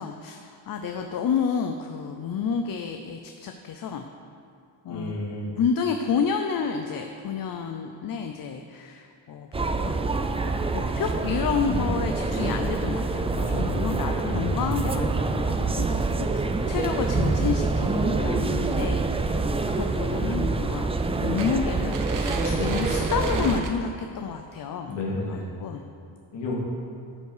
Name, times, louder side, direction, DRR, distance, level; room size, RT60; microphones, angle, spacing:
voice 1, 0.0-4.1 4.8-5.1 5.5-10.1 10.7-19.0 19.7-25.0 25.3-25.8, left 6 dB, 50° left, 5 dB, 0.6 m, -30 dB
voice 2, 4.9-5.5 11.6-11.9 13.5-13.8 14.2-14.5 24.8-25.5 26.3-26.5, left 2 dB, 65° left, -4 dB, 2.5 m, -31 dB
sound 1, 9.5-23.6, right 3 dB, 15° right, 0.3 m, -26 dB
sound 2, 18.7-19.0 19.3-19.8 20.1-20.2 20.7-20.8 21.4-23.7, right 5 dB, 45° right, 0.8 m, -38 dB
12.5 x 7.0 x 4.9 m, 2.5 s
wide cardioid pair, 160°, 46 cm